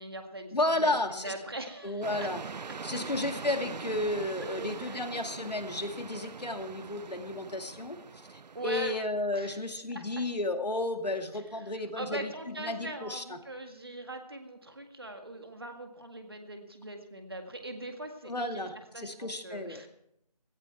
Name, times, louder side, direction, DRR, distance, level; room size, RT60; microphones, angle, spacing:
voice 1, 0.0-2.3 4.4-5.0 8.5-9.6 9.9-10.2 11.6-11.7 12.0-18.6 18.9-19.9, right 1 dB, 35° right, 5 dB, 1.9 m, -41 dB
voice 2, 0.5-1.3 1.8-2.4 2.8-8.0 8.3-13.4 18.2-19.8, left 2 dB, 75° left, 5 dB, 2.3 m, -33 dB
sound 1, 2.0-8.9, right 5 dB, 85° right, 0.5 m, -42 dB
17.5 x 14.5 x 4.6 m, 0.77 s
figure-of-eight pair, 175°, 21 cm